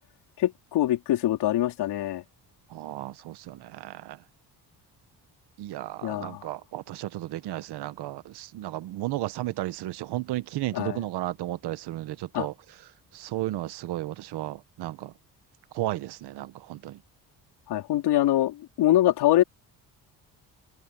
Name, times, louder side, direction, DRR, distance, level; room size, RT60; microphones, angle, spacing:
voice 1, 0.4-2.2 6.0-6.4 10.7-11.0 12.3-12.5 17.7-19.4, left 13 dB, 85° left, 4.0 m, -24 dB
voice 2, 2.7-4.2 5.6-12.5 13.1-15.1 15.7-17.0, right 15 dB, 80° right, 1.3 m, -34 dB
cardioid pair, 100°, 39 cm